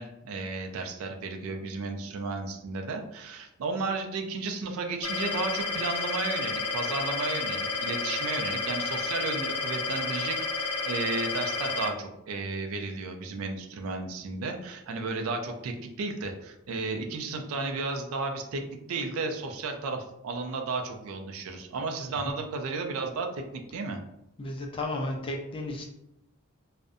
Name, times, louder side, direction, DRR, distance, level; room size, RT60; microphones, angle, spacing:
voice 1, 0.0-18.6 18.9-24.0, right 3 dB, 70° right, 5 dB, 0.4 m, -33 dB
sound 1, 5.0-11.9, left 3 dB, 90° left, 0.4 m, -31 dB
voice 2, 24.4-25.9, left 1 dB, 25° left, 1 dB, 0.3 m, -33 dB
2.5 x 2.1 x 2.4 m, 0.84 s
head